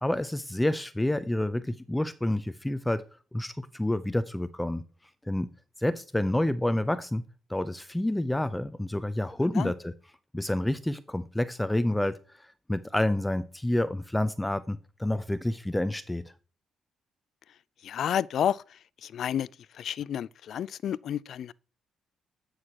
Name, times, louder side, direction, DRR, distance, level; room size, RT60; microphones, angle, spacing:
voice 1, 0.0-3.0 3.3-4.8 5.3-5.5 5.8-7.2 7.5-9.9 10.3-12.2 12.7-16.2, left 1 dB, 10° left, 0.5 m, -28 dB
voice 2, 17.8-18.6 19.0-19.5 19.8-21.5, left 9 dB, 65° left, 0.3 m, -30 dB
9.6 x 6.3 x 2.9 m
cardioid pair, 90°, 0 cm